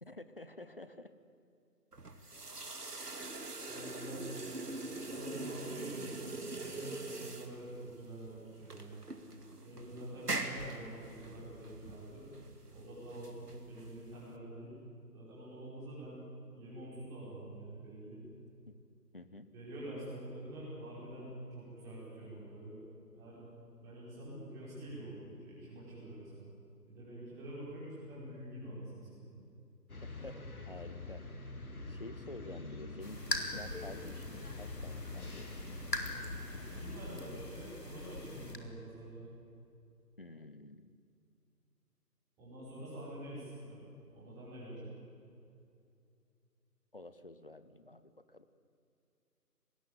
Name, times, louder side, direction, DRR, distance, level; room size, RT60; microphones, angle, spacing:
voice 1, 0.0-1.1 3.8-4.2 18.7-18.8 19.1-19.5 30.0-31.2 31.9-33.2 33.5-35.5 36.5-36.6 37.3-37.4 40.2-40.9 46.9-48.5, left 2 dB, 35° left, 12 dB, 0.9 m, -50 dB
sound 1, 1.9-14.3, right 2 dB, 70° right, 2.4 m, -43 dB
voice 2, 3.7-4.3 5.1-6.2 6.5-9.1 9.6-12.3 12.7-14.7 15.1-16.2 16.5-18.2 19.5-22.8 23.1-23.5 23.8-26.5 26.9-29.4 36.6-39.3 42.4-43.8 44.1-44.9, right 1 dB, 5° right, -9 dB, 5.1 m, -46 dB
sound 2, 29.9-37.0, left 2 dB, 60° left, 3.1 m, -45 dB
sound 3, 33.0-38.6, left 1 dB, 75° left, 3.5 m, -42 dB
28.0 x 20.5 x 8.6 m, 2.6 s
figure-of-eight pair, 160°, 49 cm